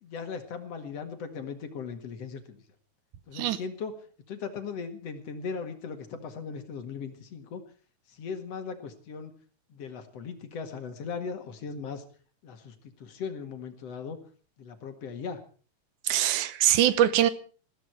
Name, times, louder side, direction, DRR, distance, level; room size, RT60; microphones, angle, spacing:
voice 1, 0.0-2.6 3.3-7.6 8.1-9.3 9.7-12.0 12.4-14.2 14.6-15.4, left 5 dB, 60° left, 7 dB, 2.8 m, -38 dB
voice 2, 16.0-17.3, right 12 dB, 90° right, 15 dB, 2.5 m, -23 dB
20.5 x 14.5 x 4.7 m, 0.40 s
omnidirectional pair, 3.5 m